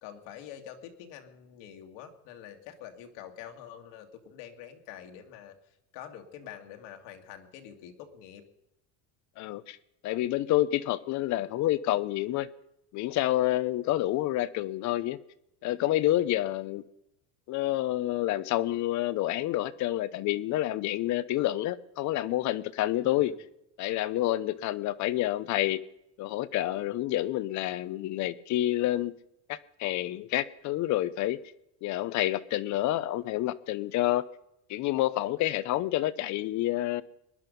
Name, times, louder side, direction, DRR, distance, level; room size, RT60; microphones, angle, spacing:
voice 1, 0.0-5.5 5.9-8.4 23.0-23.3, left 9 dB, 80° left, 2.3 m, -46 dB
voice 2, 9.4-9.8 10.0-12.5 12.9-15.2 15.6-16.8 17.5-23.3 23.8-25.8 26.2-29.1 29.5-31.4 31.8-34.2 34.7-37.0, left 15 dB, 50° left, 0.9 m, -28 dB
20.0 x 11.0 x 5.3 m
cardioid pair, 130°, 36 cm